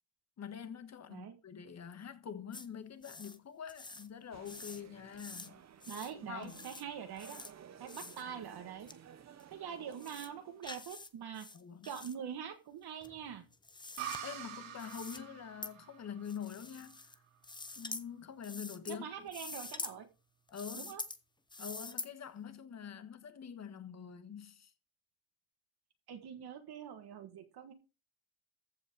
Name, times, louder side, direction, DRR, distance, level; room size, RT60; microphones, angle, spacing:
voice 1, 0.4-5.6 6.2-6.7 11.5-11.9 14.2-17.2 17.8-19.3 20.5-20.9 21.6-24.7, left 8 dB, 30° left, 1.4 m, -45 dB
sound 1, 2.5-2.7 3.0-3.4 3.7-4.1 4.5-4.8 5.1-5.5 5.8-6.1 6.4-6.8 7.2-7.5 7.9-8.2 8.9-9.0 9.4-9.5 9.9-10.3 10.6-11.1 11.3-12.1 13.0-14.2 14.8-15.2 15.6-15.7 16.2-17.1 17.4-18.0 18.4-19.0 19.3-19.9 20.5-21.2 21.5-22.1, left 3 dB, 10° left, 0.7 m, -46 dB
sound 2, 4.3-10.7, right 8 dB, 35° right, 1.0 m, -56 dB
voice 2, 5.9-7.4 7.8-8.9 9.5-11.5 11.8-13.4 18.9-20.1 20.7-21.0 26.1-27.7, right 8 dB, 50° right, 1.7 m, -44 dB
sound 3, 14.0-17.5, right 9 dB, 85° right, 4.9 m, -46 dB
14.5 x 5.5 x 5.1 m
cardioid pair, 130°, 50 cm